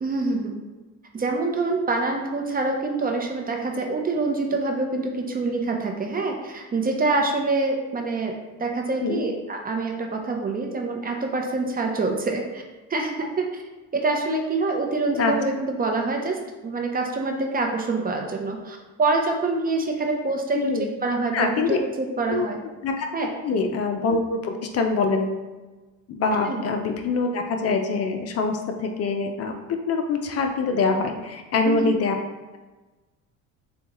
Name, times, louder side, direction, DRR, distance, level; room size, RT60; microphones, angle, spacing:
voice 1, 0.0-0.6 1.1-8.3 8.6-12.6 12.9-13.6 13.9-22.6 23.1-23.3 26.5-26.6 31.6-31.9, right 3 dB, 25° right, 2 dB, 0.7 m, -26 dB
voice 2, 20.5-20.9 21.3-21.8 22.3-22.5 22.8-23.1 23.4-25.3 26.1-29.6 29.9-32.1, left 4 dB, 45° left, 4 dB, 0.6 m, -24 dB
6.7 x 2.3 x 3.0 m, 1.2 s
supercardioid pair, 95°, 34 cm